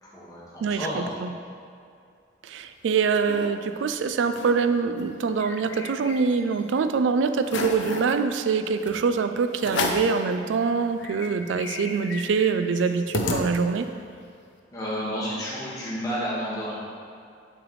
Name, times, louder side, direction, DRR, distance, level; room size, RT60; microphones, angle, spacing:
voice 1, 0.0-1.1 14.7-16.7, equal, 20° left, -9 dB, 1.6 m, -31 dB
voice 2, 0.6-1.3 2.4-13.9, right 5 dB, 90° right, 9 dB, 0.3 m, -24 dB
sound 1, 2.7-3.5 3.9-4.0 4.2-4.6 5.0-6.6 7.0-7.1 7.4-8.1 8.9-9.0 9.6-10.2 10.6-10.7 11.0-14.0, left 3 dB, 80° left, 0.6 m, -32 dB
7.3 x 5.0 x 3.2 m, 2.4 s
head